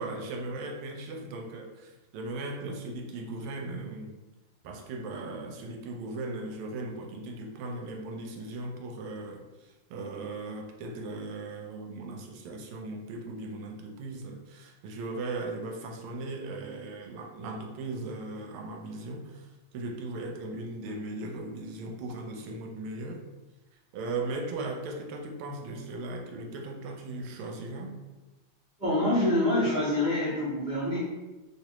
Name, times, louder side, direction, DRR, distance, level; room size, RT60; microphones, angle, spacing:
voice 1, 0.0-4.2 4.6-23.2 23.9-28.0, right 2 dB, 85° right, 3 dB, 1.4 m, -38 dB
voice 2, 28.8-31.0, left 1 dB, 30° left, -11 dB, 0.8 m, -26 dB
3.1 x 3.1 x 2.9 m, 1.1 s
omnidirectional pair, 2.2 m